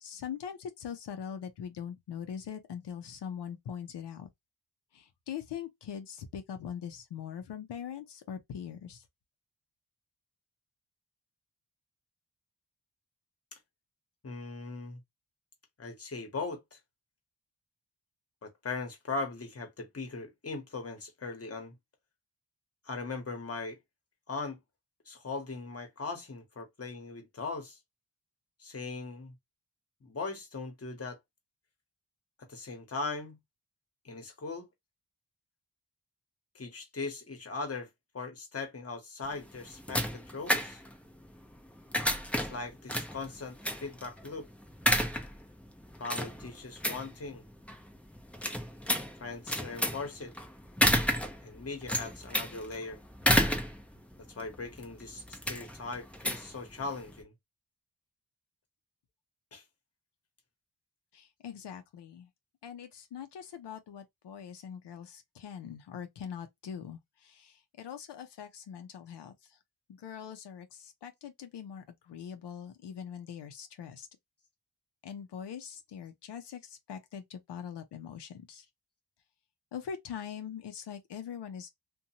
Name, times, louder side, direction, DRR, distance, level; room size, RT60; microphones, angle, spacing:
voice 1, 0.0-4.3 4.9-9.0 61.1-62.3 62.6-69.6 69.9-74.1 75.0-78.7 79.7-81.7, left 8 dB, 85° left, 0.6 m, -42 dB
voice 2, 14.2-15.0 15.8-16.8 18.4-21.8 22.8-23.8 24.3-24.6 25.1-27.8 28.6-29.3 30.0-31.2 32.4-33.4 34.0-34.7 36.5-37.9 38.1-40.8 42.3-44.5 46.0-47.4 49.2-50.3 51.4-53.0 54.3-57.3 59.5-59.6, left 3 dB, 35° left, 1.0 m, -39 dB
sound 1, 39.2-57.2, equal, 5° left, 0.5 m, -32 dB
2.6 x 2.2 x 2.7 m
wide cardioid pair, 80°, 40 cm